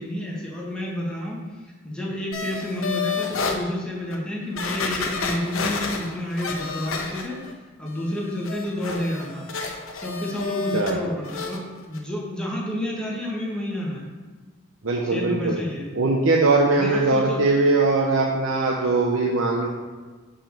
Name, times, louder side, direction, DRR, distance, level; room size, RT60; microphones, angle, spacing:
voice 1, 0.0-1.4 1.8-7.4 7.8-9.5 9.9-14.0 15.0-15.9 16.7-17.4 18.1-18.2, left 1 dB, 5° left, -4 dB, 1.6 m, -30 dB
sound 1, 2.3-3.6 4.1-4.2 4.6-7.5 7.9-10.9 11.2-11.6 11.9-12.0, left 4 dB, 70° left, 0.9 m, -30 dB
voice 2, 14.8-15.6 15.9-19.7, right 3 dB, 65° right, 0 dB, 0.8 m, -21 dB
6.1 x 4.9 x 6.6 m, 1.3 s
head